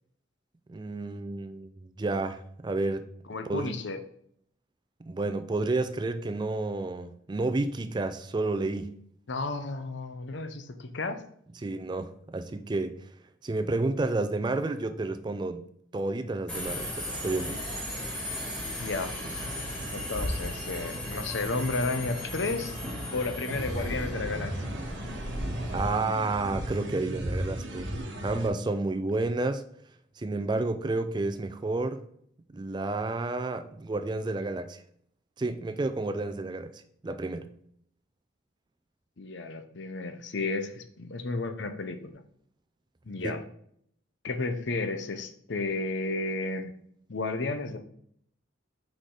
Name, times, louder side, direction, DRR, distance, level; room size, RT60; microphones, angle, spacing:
voice 1, 0.7-3.1 3.5-3.8 5.0-8.9 11.6-13.0 13.4-15.7 15.9-17.7 25.7-29.6 30.2-32.0 32.5-34.8 35.4-37.5 43.2-43.4, right 2 dB, 20° right, 0.3 m, -30 dB
voice 2, 3.3-4.0 9.3-11.2 18.8-19.1 19.9-22.8 23.1-24.6 39.2-42.0 43.1-43.4 44.2-46.7 47.1-47.8, left 3 dB, 65° left, 0.7 m, -32 dB
Subway metro underground, 16.5-25.9, left 1 dB, 5° left, 2.0 m, -36 dB
sound 1, 23.5-28.5, equal, 70° right, 1.2 m, -35 dB
6.2 x 4.9 x 3.8 m
head